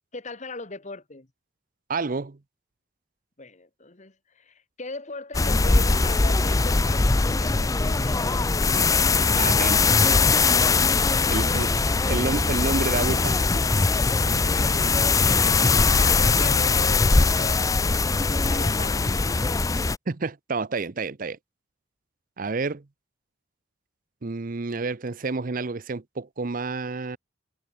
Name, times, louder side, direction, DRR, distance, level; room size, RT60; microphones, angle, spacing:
voice 1, 0.1-1.3 3.4-8.9 10.5-12.3 14.3-17.9 18.2-19.6, left 3 dB, 40° left, 1.7 m, -40 dB
voice 2, 1.9-2.4 9.3-10.4 11.3-11.7 12.1-13.6 20.1-21.4 22.4-22.8 24.2-27.2, right 3 dB, 45° right, 0.7 m, -29 dB
sound 1, 5.3-20.0, left 4 dB, 20° left, 0.4 m, -21 dB
head